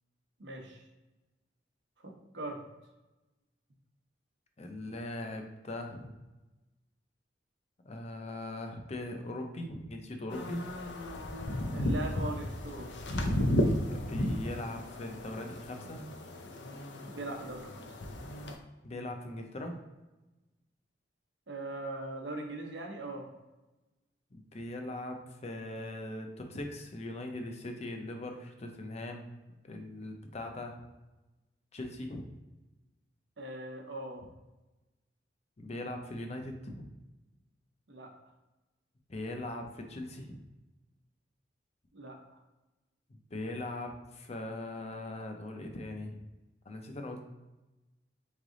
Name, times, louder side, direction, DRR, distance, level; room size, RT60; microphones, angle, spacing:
voice 1, 0.4-0.9 2.0-2.6 11.7-12.9 17.1-17.8 21.5-23.3 33.4-34.2 37.9-38.1 41.9-42.4, right 2 dB, 80° right, 2 dB, 0.9 m, -40 dB
voice 2, 4.6-6.1 7.8-10.7 13.9-16.0 18.8-19.8 24.3-29.3 29.6-30.8 31.7-32.3 35.6-36.9 39.1-40.4 43.1-46.2 46.7-47.2, left 1 dB, 35° left, 4 dB, 0.5 m, -40 dB
sound 1, 10.3-18.5, left 1 dB, 80° left, 0.6 m, -34 dB
3.8 x 3.3 x 3.7 m, 1.1 s
head